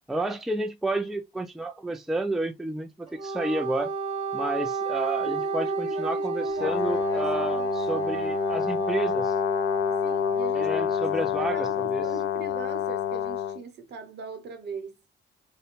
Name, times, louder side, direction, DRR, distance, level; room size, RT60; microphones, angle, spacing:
voice 1, 0.1-3.9 4.3-9.3 10.5-12.1, right 2 dB, ahead, 0.3 m, -31 dB
Wind instrument woodwind instrument, 3.1-11.1, right 3 dB, 30° right, 1.0 m, -31 dB
voice 2, 5.2-8.1 9.9-15.0, right 5 dB, 60° right, 0.9 m, -41 dB
Brass instrument, 6.6-13.6, left 11 dB, 70° left, 0.6 m, -28 dB
2.6 x 2.2 x 2.8 m
cardioid pair, 90°, 20 cm